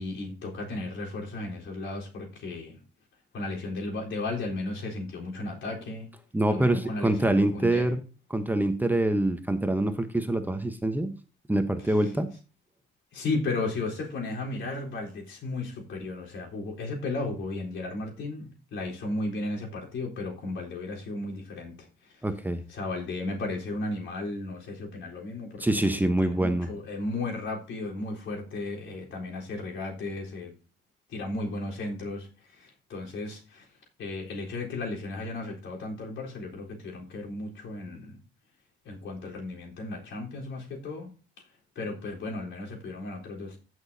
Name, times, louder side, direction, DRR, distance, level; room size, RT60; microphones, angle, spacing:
voice 1, 0.0-2.8 3.3-6.1 6.5-7.9 13.1-21.7 22.1-22.2 22.7-30.5 31.1-33.6 34.0-38.2 38.8-41.1 41.8-43.6, left 2 dB, 75° left, -1 dB, 4.0 m, -35 dB
voice 2, 6.3-8.0 8.3-11.1 11.5-12.3 22.2-22.6 25.6-26.7, right 1 dB, 10° right, 7 dB, 1.0 m, -25 dB
15.5 x 6.3 x 2.8 m, 0.36 s
cardioid pair, 90°, 20 cm